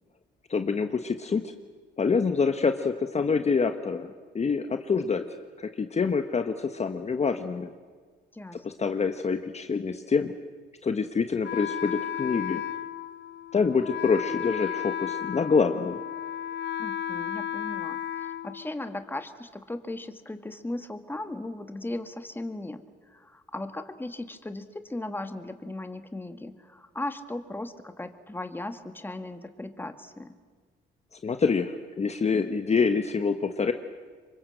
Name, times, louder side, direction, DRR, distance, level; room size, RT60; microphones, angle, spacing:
voice 1, 0.5-1.5 2.0-5.2 5.6-7.7 8.6-10.3 10.8-12.6 13.5-16.0 31.2-33.7, left 5 dB, 35° left, 7 dB, 1.2 m, -26 dB
voice 2, 8.3-8.6 16.8-22.8 23.1-30.4, left 2 dB, 10° left, 8 dB, 1.8 m, -37 dB
Wind instrument woodwind instrument, 11.4-19.2, left 10 dB, 65° left, 1.0 m, -34 dB
27.0 x 24.0 x 7.8 m, 1.5 s
cardioid pair, 90°, 20 cm